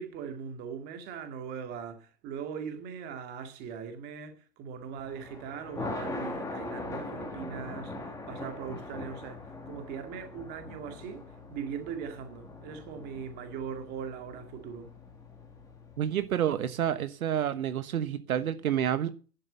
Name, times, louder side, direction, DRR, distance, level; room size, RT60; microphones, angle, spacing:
voice 1, 0.0-14.9, right 7 dB, 20° right, 2.1 m, -40 dB
Thunder, 4.9-16.2, left 3 dB, 5° left, 2.1 m, -42 dB
voice 2, 16.0-19.1, right 10 dB, 60° right, 1.3 m, -29 dB
11.5 x 7.7 x 8.0 m
hypercardioid pair, 160°, 48 cm